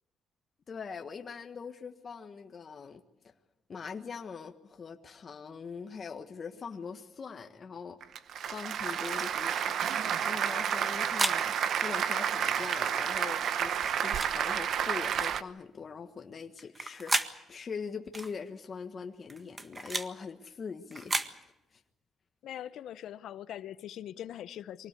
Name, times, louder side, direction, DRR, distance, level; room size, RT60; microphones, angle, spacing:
voice 1, 0.7-3.3 3.7-9.7 10.0-21.4 21.7-21.8, left 5 dB, 45° left, 1.4 m, -42 dB
Applause, 8.0-15.4, right 8 dB, 70° right, 1.0 m, -30 dB
sound 1, 9.0-9.3 10.6-11.4 12.5-12.7 13.8-14.3 15.2-15.4 16.6-17.3 18.1-18.3 19.3-20.1 20.9-21.3, right 2 dB, 25° right, 1.7 m, -34 dB
voice 2, 22.4-24.9, left 11 dB, 75° left, 0.7 m, -42 dB
24.5 x 18.0 x 8.4 m
cardioid pair, 90°, 0 cm